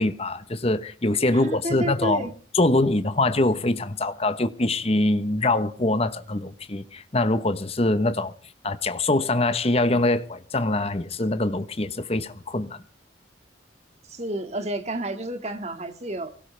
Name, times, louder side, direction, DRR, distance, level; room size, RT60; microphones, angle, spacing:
voice 1, 0.0-2.3 2.5-8.3 8.6-12.8, left 2 dB, 30° left, 1.1 m, -24 dB
voice 2, 1.3-2.3 14.1-16.3, right 1 dB, 35° right, 2.0 m, -30 dB
24.5 x 17.0 x 3.4 m
head